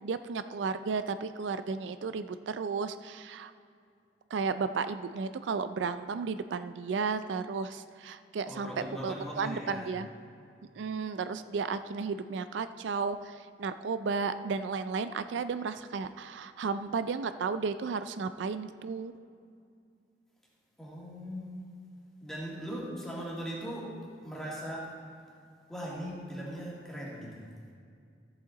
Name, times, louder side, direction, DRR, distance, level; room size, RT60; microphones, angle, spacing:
voice 1, 0.0-3.5 4.3-8.7 9.0-10.1 10.8-19.1, right 5 dB, 85° right, 12 dB, 0.4 m, -33 dB
voice 2, 8.5-9.9 20.8-21.7 22.2-24.9 25.7-27.5, equal, 5° left, -6 dB, 2.0 m, -39 dB
14.0 x 8.0 x 3.9 m, 2.4 s
head